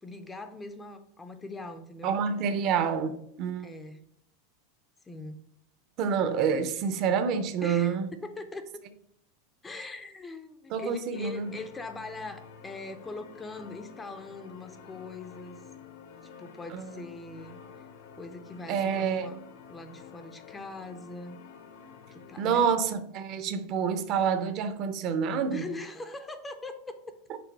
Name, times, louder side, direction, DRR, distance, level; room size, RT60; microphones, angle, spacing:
voice 1, 0.0-2.2 3.6-4.0 5.1-5.4 7.6-8.7 9.6-15.6 16.2-17.9 18.2-19.4 19.7-21.4 22.1-22.7 25.5-26.7, left 3 dB, 10° left, 0.4 m, -41 dB
voice 2, 2.0-3.7 6.0-8.1 10.7-11.5 16.7-17.0 18.7-19.3 22.4-25.6, right 6 dB, 40° right, 0.6 m, -28 dB
sound 1, 11.1-22.9, left 6 dB, 80° left, 1.1 m, -50 dB
6.0 x 3.6 x 4.6 m
supercardioid pair, 160°, 0 cm